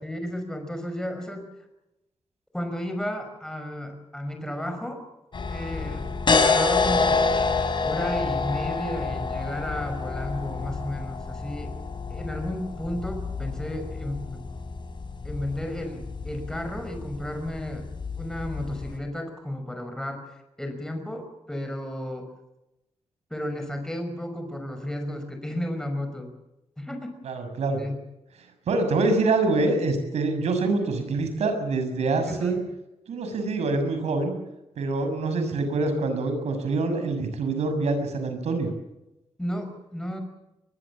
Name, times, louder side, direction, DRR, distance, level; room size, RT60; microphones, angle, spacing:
voice 1, 0.0-1.5 2.5-5.0 5.5-7.3 7.8-11.8 12.1-14.4 15.2-17.9 18.2-22.3 23.3-26.3 26.8-27.1 27.8-27.9 32.3-32.7 39.4-40.2, left 1 dB, 5° left, 5 dB, 5.4 m, -33 dB
sound 1, 5.3-19.0, left 4 dB, 45° left, 5.0 m, -28 dB
voice 2, 27.2-27.8 28.7-32.6 33.1-34.4 34.8-38.7, right 3 dB, 85° right, 8 dB, 6.4 m, -25 dB
22.5 x 22.5 x 7.5 m, 0.92 s
cardioid pair, 105°, 11 cm